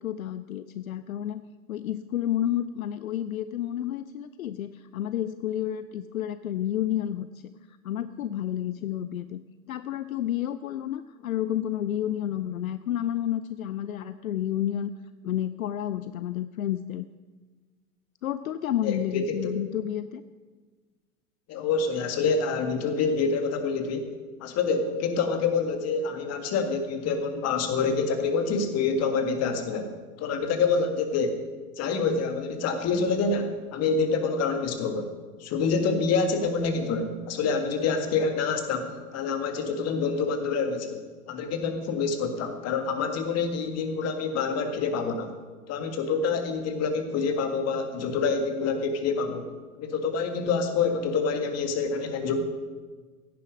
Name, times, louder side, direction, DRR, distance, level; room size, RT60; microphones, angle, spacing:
voice 1, 0.0-1.4 1.7-7.5 7.8-9.4 9.7-14.9 15.2-17.0 18.2-20.2, left 11 dB, 70° left, 14 dB, 0.6 m, -30 dB
voice 2, 18.8-19.5 21.5-24.1 24.4-29.9 30.2-31.4 31.8-35.1 35.4-45.3 45.7-49.5 49.8-52.4, left 4 dB, 35° left, 6 dB, 2.0 m, -27 dB
16.0 x 10.5 x 5.2 m, 1.4 s
figure-of-eight pair, 90°, 43 cm